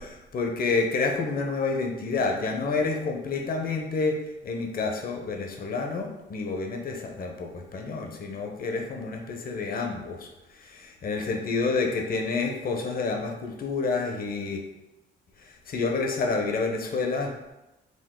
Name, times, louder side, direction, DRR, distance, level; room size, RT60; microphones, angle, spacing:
voice 1, 0.0-10.3 10.5-14.6 15.7-17.3, left 4 dB, 45° left, 2 dB, 0.7 m, -29 dB
5.1 x 2.0 x 3.7 m, 0.97 s
cardioid pair, 90°, 20 cm